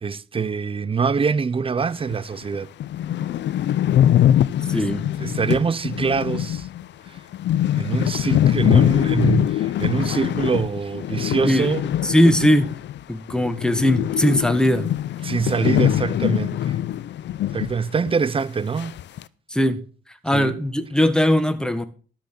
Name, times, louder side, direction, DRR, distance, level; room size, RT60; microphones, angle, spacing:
voice 1, 0.0-2.7 4.7-4.9 5.2-6.7 7.1-7.2 7.7-11.8 15.2-16.8 17.5-18.9 20.3-20.5, right 5 dB, 25° right, 0.6 m, -24 dB
sound 1, 2.1-2.2 2.5-2.6 2.8-13.0 13.3-17.8 18.1-18.2 18.8-19.2, left 11 dB, 65° left, 0.6 m, -22 dB
voice 2, 4.7-5.0 11.3-11.7 12.0-12.7 13.1-14.9 19.5-19.8 20.2-21.8, equal, 5° left, 1.5 m, -19 dB
12.5 x 5.9 x 6.7 m
cardioid pair, 90°, 20 cm